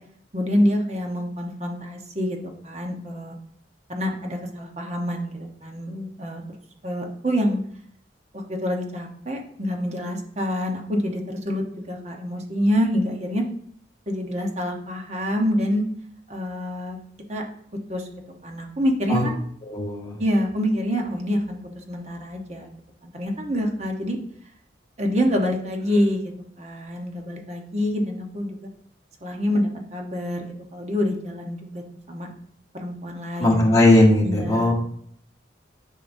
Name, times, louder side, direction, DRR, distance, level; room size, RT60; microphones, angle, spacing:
voice 1, 0.3-3.4 3.9-6.4 6.8-7.6 8.3-13.4 14.1-15.8 16.3-17.0 17.3-17.4 17.9-18.1 18.4-19.4 20.2-22.7 23.0-24.2 25.0-28.7 29.2-32.3 32.7-33.8 34.2-34.7, equal, 35° right, 2 dB, 1.0 m, -26 dB
voice 2, 19.7-20.2 33.4-34.7, left 1 dB, 20° left, -2 dB, 1.6 m, -18 dB
10.5 x 5.6 x 2.7 m, 0.63 s
head